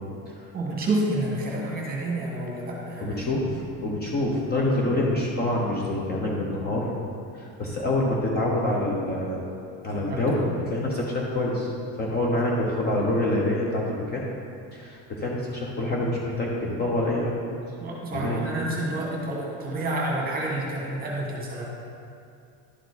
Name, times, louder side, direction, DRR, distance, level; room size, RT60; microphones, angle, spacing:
voice 1, 0.5-3.3 10.1-10.4 17.8-21.7, right 1 dB, 25° right, -3 dB, 1.4 m, -29 dB
voice 2, 3.0-6.9 7.3-9.4 9.8-11.7 12.0-14.2 14.7-17.6 18.1-18.4, left 1 dB, 25° left, -3 dB, 0.8 m, -26 dB
11.0 x 4.6 x 4.0 m, 2.5 s
cardioid pair, 170°, 39 cm